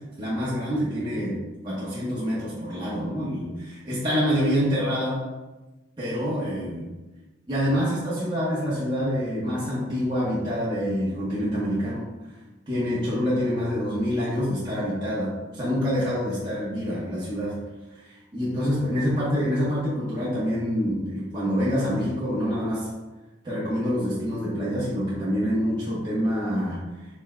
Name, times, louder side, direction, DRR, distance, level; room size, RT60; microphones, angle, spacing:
voice 1, 0.2-5.2 6.0-6.9 7.5-12.0 12.7-17.6 17.9-22.9 23.4-26.8, equal, 20° right, -10 dB, 1.0 m, -26 dB
5.4 x 3.7 x 2.2 m, 1.1 s
head